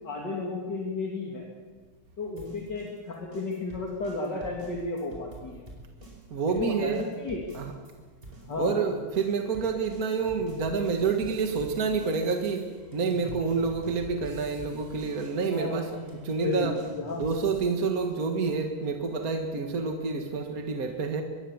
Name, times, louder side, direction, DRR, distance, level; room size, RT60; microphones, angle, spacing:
voice 1, 0.0-1.5 2.2-5.6 6.5-7.4 8.5-8.8 15.5-15.8 16.4-17.2, left 3 dB, 50° left, -2 dB, 3.3 m, -33 dB
sound 1, 2.4-7.9 8.2-18.0, right 1 dB, 25° right, 5.4 m, -46 dB
voice 2, 6.3-7.0 7.5-7.7 8.6-15.9 16.2-16.8 17.2-21.2, right 5 dB, 45° right, 4 dB, 2.0 m, -28 dB
25.5 x 21.5 x 7.3 m, 1.4 s
omnidirectional pair, 2.4 m